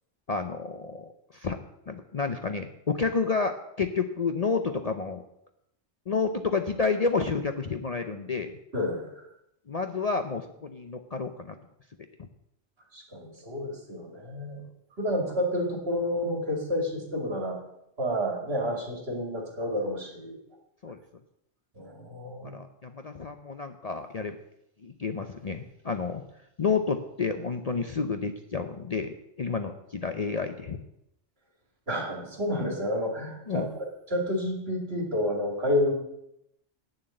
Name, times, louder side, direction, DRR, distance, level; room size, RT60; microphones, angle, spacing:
voice 1, 0.3-1.6 1.9-5.2 6.1-8.6 9.7-11.5 12.2-12.3 20.8-21.0 22.4-24.4 24.8-26.2 26.6-30.8 33.5-33.7, left 4 dB, 40° left, 7 dB, 0.6 m, -30 dB
voice 2, 8.7-9.3 12.9-14.6 15.0-17.6 18.0-20.4 21.7-22.6 31.9-35.9, left 1 dB, 60° right, 1 dB, 2.8 m, -30 dB
8.9 x 7.3 x 7.7 m, 0.80 s
omnidirectional pair, 1.2 m